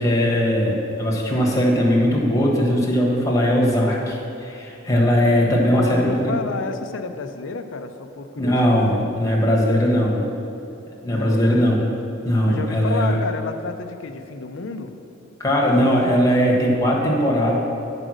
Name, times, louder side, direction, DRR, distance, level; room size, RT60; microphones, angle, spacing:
voice 1, 0.0-6.3 8.4-10.2 10.9-11.8 12.2-13.2 15.4-17.6, equal, 15° left, -3 dB, 1.5 m, -19 dB
voice 2, 5.7-9.1 11.1-11.6 12.4-14.9, left 4 dB, 70° left, 7 dB, 0.6 m, -31 dB
8.9 x 5.1 x 6.4 m, 2.9 s
head